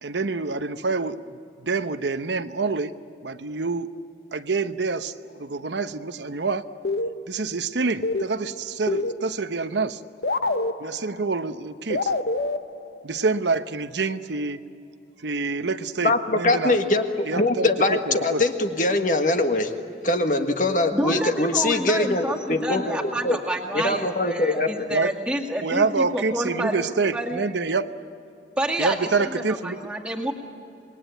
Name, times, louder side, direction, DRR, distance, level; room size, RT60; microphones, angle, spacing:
voice 1, 0.0-1.2 1.6-2.9 3.2-3.9 4.3-6.7 7.3-10.0 10.8-12.1 13.0-14.6 15.2-16.8 17.2-18.4 24.9-25.1 25.6-27.9 28.8-29.9, right 4 dB, 85° right, 10 dB, 0.9 m, -27 dB
sound 1, 6.8-7.6 7.9-9.6 9.9-10.0 10.2-11.4 11.9-13.4, left 2 dB, 65° left, 0.9 m, -28 dB
voice 2, 16.0-17.0 17.3-19.7 20.0-23.4 23.7-24.7, left 2 dB, 45° left, 6 dB, 1.6 m, -22 dB
voice 3, 20.9-27.4 28.6-30.3, right 1 dB, 5° right, 0 dB, 2.2 m, -29 dB
26.5 x 21.0 x 9.1 m, 2.6 s
head